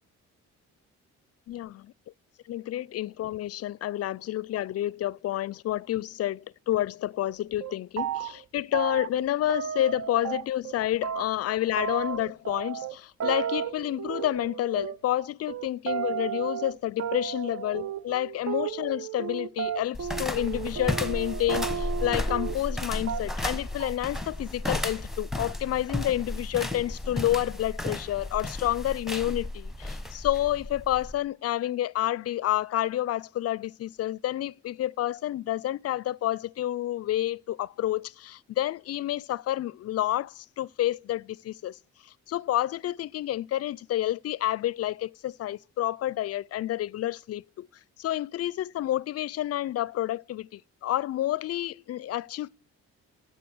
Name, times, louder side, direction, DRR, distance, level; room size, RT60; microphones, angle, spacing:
voice 1, 1.5-1.9 2.5-47.7 48.0-52.5, left 13 dB, 55° left, 0.4 m, -29 dB
sound 1, 7.3-7.4 7.6-8.4 8.7-10.8 11.0-22.8 23.1-23.5 23.8-24.2, right 8 dB, 60° right, 0.9 m, -33 dB
sound 2, 19.9-31.2, left 1 dB, ahead, 1.2 m, -33 dB
13.0 x 5.1 x 7.7 m
cardioid pair, 90°, 30 cm